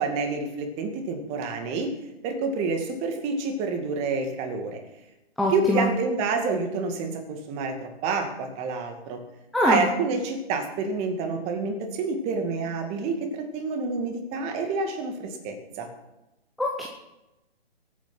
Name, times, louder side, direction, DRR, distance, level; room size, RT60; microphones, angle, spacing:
voice 1, 0.0-1.9 2.2-4.8 5.5-9.2 9.6-15.9, right 4 dB, 20° right, 5 dB, 2.3 m, -28 dB
voice 2, 5.4-5.9 9.5-9.9 16.6-16.9, left 1 dB, ahead, -2 dB, 0.7 m, -23 dB
22.0 x 9.1 x 6.0 m, 0.97 s
figure-of-eight pair, 145°, 31 cm